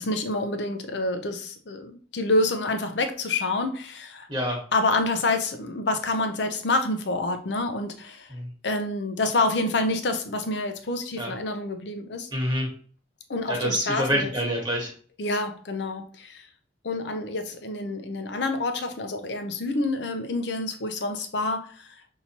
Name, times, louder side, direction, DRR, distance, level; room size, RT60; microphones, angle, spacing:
voice 1, 0.0-4.3 4.7-8.3 8.6-12.3 13.3-14.3 15.2-16.5 16.8-22.0, left 2 dB, 70° left, 0.6 m, -27 dB
voice 2, 12.3-12.7 13.5-14.9, equal, 25° right, 1.3 m, -26 dB
5.9 x 2.8 x 2.8 m
head